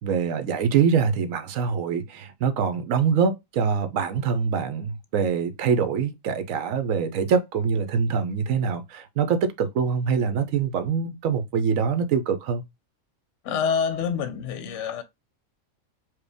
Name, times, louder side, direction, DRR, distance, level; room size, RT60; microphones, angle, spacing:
voice 1, 0.0-12.6, right 6 dB, 70° right, 1.1 m, -24 dB
voice 2, 13.4-15.0, left 6 dB, 65° left, 0.8 m, -26 dB
4.7 x 2.2 x 3.4 m
omnidirectional pair, 1.5 m